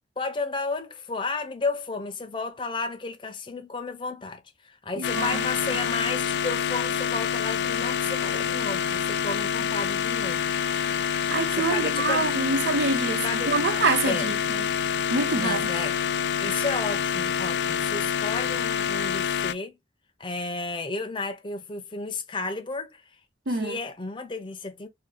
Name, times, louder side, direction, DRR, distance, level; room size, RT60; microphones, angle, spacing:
voice 1, 0.2-10.4 11.5-12.4 13.1-13.5 14.0-14.3 15.3-16.0 16.4-19.8 20.2-23.0 23.5-24.9, left 3 dB, 25° left, 0.6 m, -32 dB
sound 1, 5.0-19.5, left 7 dB, 70° left, 0.4 m, -27 dB
voice 2, 5.0-5.5 11.3-14.7 15.1-15.6 23.5-23.8, right 3 dB, 70° right, 0.6 m, -26 dB
2.7 x 2.7 x 3.7 m
head